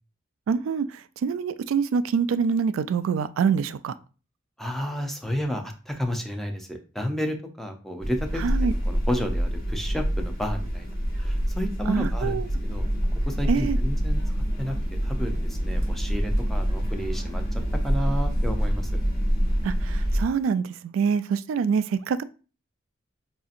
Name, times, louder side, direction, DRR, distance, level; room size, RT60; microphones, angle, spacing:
voice 1, 0.5-3.9 8.4-8.7 11.9-12.5 13.5-13.8 19.6-22.2, right 6 dB, 85° right, 15 dB, 0.3 m, -25 dB
voice 2, 4.6-10.9 11.2-12.9 13.3-14.2 14.6-14.8 15.0-17.4 17.8-18.9, equal, ahead, 4 dB, 0.5 m, -31 dB
sound 1, 8.0-20.2, equal, 50° left, 1.1 m, -26 dB
4.8 x 2.7 x 2.5 m, 0.35 s
head